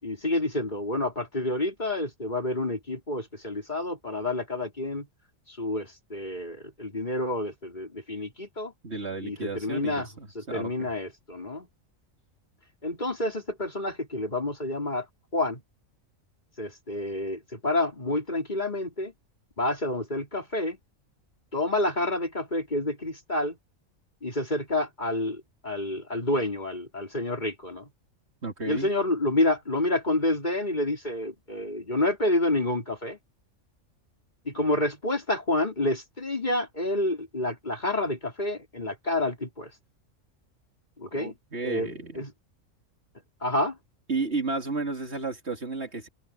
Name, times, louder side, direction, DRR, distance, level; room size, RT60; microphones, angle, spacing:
voice 1, 0.0-5.1 5.5-8.7 9.2-10.1 10.3-11.7 12.8-15.0 15.3-15.6 16.6-19.1 19.6-20.8 21.5-23.6 24.2-27.8 28.7-33.2 34.4-39.7 41.0-41.3 41.6-41.9 42.2-42.3 43.4-43.8, left 1 dB, 35° left, 4.5 m, -29 dB
voice 2, 8.8-10.9 28.4-28.9 41.1-42.2 44.1-46.1, right 3 dB, 55° right, 2.9 m, -33 dB
open air
omnidirectional pair, 1.3 m